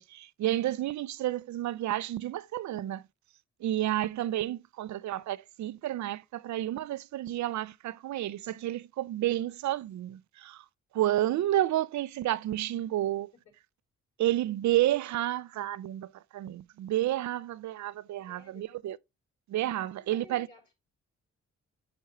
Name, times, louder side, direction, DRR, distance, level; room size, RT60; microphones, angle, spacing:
voice 1, 0.0-3.0 3.6-10.6 10.9-13.3 14.2-19.0 19.5-20.5, right 13 dB, 75° right, 0.5 m, -30 dB
voice 2, 18.2-18.7 19.8-20.7, left 3 dB, 80° left, 4.6 m, -55 dB
11.0 x 4.5 x 3.1 m
cardioid pair, 80°, 29 cm